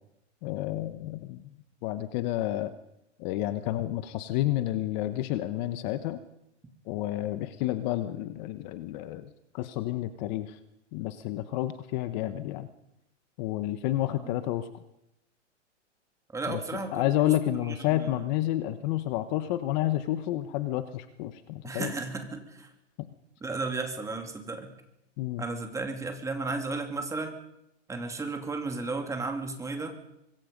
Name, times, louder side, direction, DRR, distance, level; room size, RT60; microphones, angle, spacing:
voice 1, 0.4-1.5 1.8-2.7 3.2-6.2 6.9-10.6 10.9-12.7 13.4-14.7 16.5-21.9 25.2-25.4, left 14 dB, 40° left, 11 dB, 1.2 m, -30 dB
voice 2, 16.3-17.1 17.6-18.3 21.6-22.7 23.4-24.7 25.4-27.4 27.9-30.0, right 3 dB, 10° right, 5 dB, 2.6 m, -34 dB
24.5 x 22.0 x 5.3 m, 0.84 s
hypercardioid pair, 150°, 36 cm